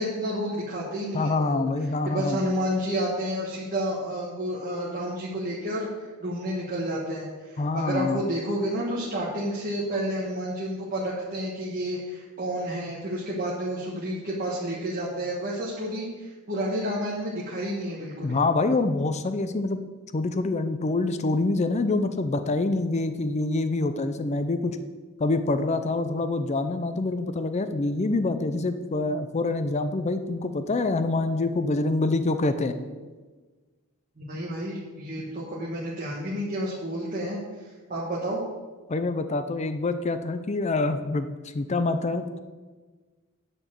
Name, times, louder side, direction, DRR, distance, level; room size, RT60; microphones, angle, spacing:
voice 1, 0.0-1.6 2.0-18.4 34.2-38.4, equal, 40° right, -6 dB, 1.4 m, -30 dB
voice 2, 1.1-2.4 7.6-8.2 18.2-19.8 20.1-24.8 25.2-32.7 38.9-42.4, left 2 dB, 30° left, 9 dB, 0.5 m, -26 dB
9.8 x 4.4 x 7.5 m, 1.3 s
head